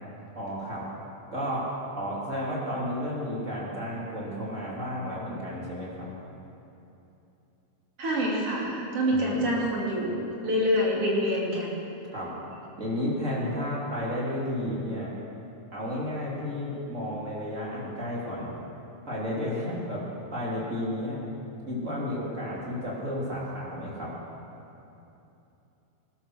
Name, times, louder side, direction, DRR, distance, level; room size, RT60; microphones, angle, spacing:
voice 1, 0.3-0.8 1.3-1.7 1.9-6.1 9.1-9.5 12.1-12.3 12.8-15.1 15.7-18.5 19.0-20.0 20.3-21.2 21.7-24.1, left 1 dB, 25° right, -5 dB, 3.3 m, -32 dB
voice 2, 8.0-11.8, equal, 50° right, -4 dB, 3.4 m, -26 dB
19.0 x 11.5 x 6.3 m, 2.9 s
omnidirectional pair, 3.4 m